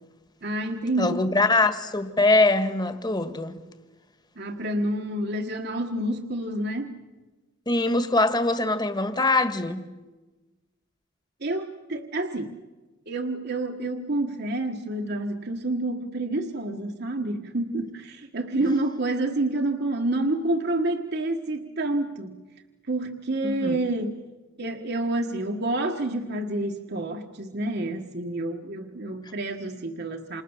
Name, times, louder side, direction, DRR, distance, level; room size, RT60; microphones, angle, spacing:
voice 1, 0.4-1.3 4.4-6.9 11.4-12.6 13.1-22.4 22.9-24.2 24.6-30.4, right 2 dB, 55° right, 1.6 m, -28 dB
voice 2, 1.0-3.6 7.6-9.8 23.4-23.8, left 2 dB, 20° left, 1.8 m, -23 dB
29.5 x 27.5 x 7.3 m
head